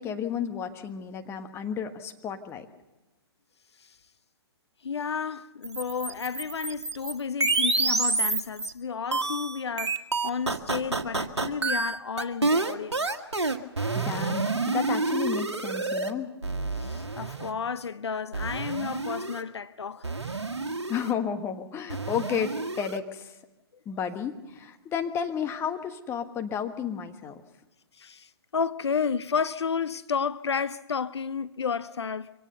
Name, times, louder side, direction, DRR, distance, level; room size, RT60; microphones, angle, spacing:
voice 1, 0.0-2.6 13.9-16.3 20.9-23.3 23.8-27.3, left 7 dB, 20° left, 1.4 m, -32 dB
voice 2, 4.8-13.2 16.8-20.1 28.0-32.3, left 6 dB, 75° left, 0.6 m, -32 dB
sound 1, 5.6-8.7 9.1-16.1 16.4-17.5 18.3-19.4 20.0-21.1 21.9-23.0, right 3 dB, 90° right, 1.5 m, -28 dB
24.5 x 17.5 x 6.7 m
figure-of-eight pair, 130°, 14 cm